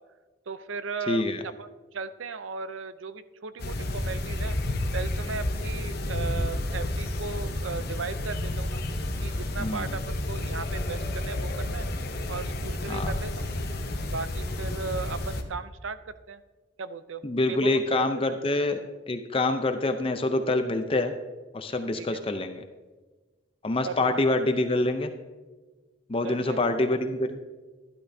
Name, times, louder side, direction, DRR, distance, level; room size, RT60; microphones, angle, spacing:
voice 1, 0.5-4.6 4.9-8.8 9.2-11.9 12.3-13.5 14.1-16.4 16.8-18.4 21.9-22.2 23.8-24.2 26.2-26.7, right 5 dB, 80° right, 13 dB, 0.6 m, -37 dB
voice 2, 1.1-1.4 9.6-9.9 12.9-13.1 17.2-18.8 19.1-21.1 21.5-22.6 23.6-25.1 26.1-27.4, left 2 dB, 30° left, 7 dB, 0.6 m, -26 dB
sound 1, 3.6-15.4, left 1 dB, 50° left, 0.9 m, -31 dB
12.0 x 12.0 x 2.7 m, 1.3 s
head